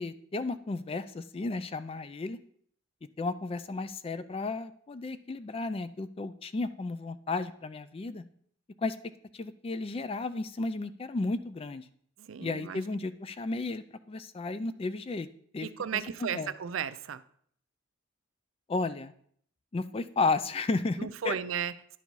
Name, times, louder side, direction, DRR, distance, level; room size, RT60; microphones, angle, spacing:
voice 1, 0.0-2.4 3.2-8.2 8.8-9.0 9.3-11.8 12.4-15.3 15.5-16.5 18.7-19.1 19.7-21.4, left 3 dB, 30° left, 12 dB, 0.3 m, -33 dB
voice 2, 12.2-12.8 15.6-17.2 21.0-22.0, right 8 dB, 90° right, 14 dB, 0.4 m, -35 dB
10.5 x 4.1 x 4.6 m, 0.63 s
head